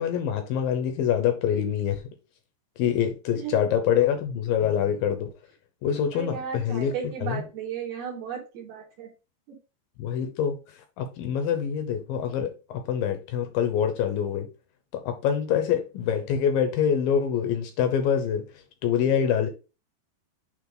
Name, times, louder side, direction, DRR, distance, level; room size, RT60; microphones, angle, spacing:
voice 1, 0.0-2.0 2.8-5.3 5.8-6.9 7.2-7.4 10.0-10.6 11.0-14.5 14.9-18.5 18.8-19.5, left 8 dB, 75° left, 2.2 m, -25 dB
voice 2, 6.1-9.1 9.5-9.6, right 7 dB, 65° right, 3.4 m, -35 dB
9.2 x 3.5 x 3.9 m
omnidirectional pair, 5.2 m